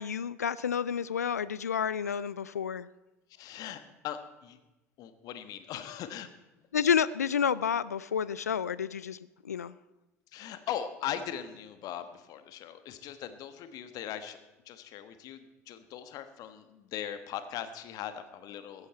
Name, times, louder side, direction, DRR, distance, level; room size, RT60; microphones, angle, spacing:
voice 1, 0.0-2.9 6.7-9.2 9.4-9.7, left 7 dB, 80° left, 19 dB, 0.4 m, -30 dB
voice 2, 3.4-4.6 5.0-6.3 10.3-14.4 14.7-18.9, left 10 dB, 45° left, 10 dB, 1.4 m, -40 dB
15.5 x 15.0 x 4.3 m, 1.0 s
figure-of-eight pair, 70°, 8 cm